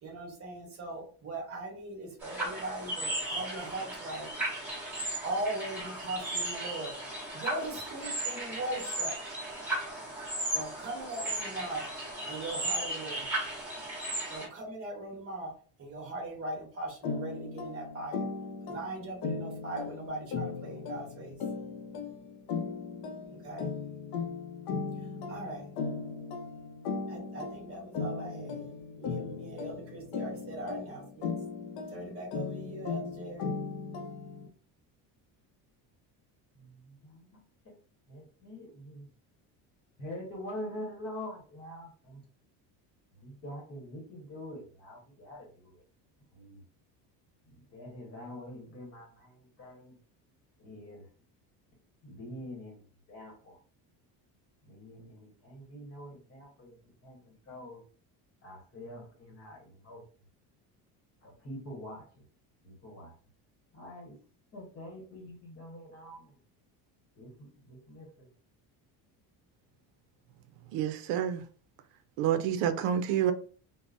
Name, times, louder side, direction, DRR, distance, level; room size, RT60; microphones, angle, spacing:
voice 1, 0.0-4.3 5.2-6.9 7.3-9.4 10.5-11.8 12.3-13.3 14.3-15.5 15.8-18.2 18.7-21.4 23.3-23.7 25.3-25.6 27.1-31.3 31.9-33.5, right 2 dB, 35° right, 1.1 m, -39 dB
sound 1, 2.2-14.5, right 1 dB, 5° right, 1.1 m, -36 dB
sound 2, 17.0-34.5, left 5 dB, 60° left, 0.6 m, -37 dB
voice 2, 36.6-37.4 37.6-37.7 38.1-39.1 40.0-42.2 43.1-45.8 46.3-46.6 47.4-49.9 50.6-51.0 52.0-53.6 54.6-56.7 57.0-57.8 58.4-60.0 61.2-62.2 62.6-63.1 63.7-64.2 64.5-66.3 67.1-68.3, left 1 dB, 35° left, 1.0 m, -45 dB
voice 3, 70.7-71.4 72.2-73.3, right 9 dB, 85° right, 0.5 m, -28 dB
3.7 x 2.1 x 2.5 m
cardioid pair, 165°, 40 cm